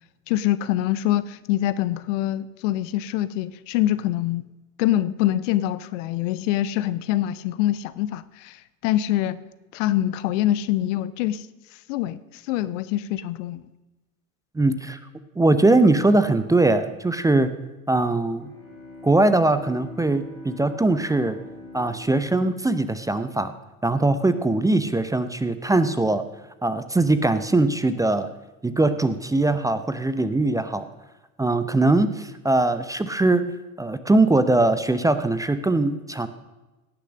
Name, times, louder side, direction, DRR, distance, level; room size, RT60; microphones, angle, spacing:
voice 1, 0.3-4.4 4.8-9.4 9.7-11.5 11.9-13.6, left 13 dB, 60° left, 0.8 m, -25 dB
voice 2, 14.5-15.0 15.4-17.5 17.9-18.5 19.0-21.4 21.7-23.5 23.8-26.2 26.6-28.3 28.6-30.9 31.4-33.5 33.8-36.3, right 2 dB, 10° right, 0.6 m, -21 dB
Bowed string instrument, 18.3-23.8, left 1 dB, 85° left, 5.0 m, -43 dB
17.5 x 6.6 x 6.4 m
figure-of-eight pair, 70°, 43 cm